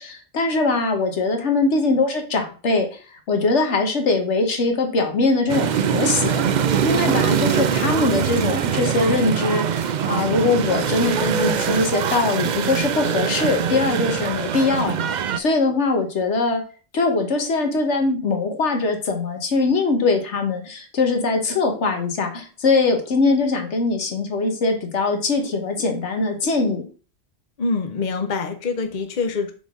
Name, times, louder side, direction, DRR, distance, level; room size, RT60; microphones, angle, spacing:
voice 1, 0.0-6.4 6.8-15.0 15.4-16.6 16.9-26.8, left 3 dB, 65° left, 4 dB, 1.4 m, -22 dB
sound 1, 5.5-15.4, right 7 dB, 70° right, 0.4 m, -23 dB
voice 2, 27.6-29.5, left 4 dB, 45° left, 7 dB, 0.7 m, -25 dB
7.4 x 4.0 x 3.6 m, 0.37 s
omnidirectional pair, 1.3 m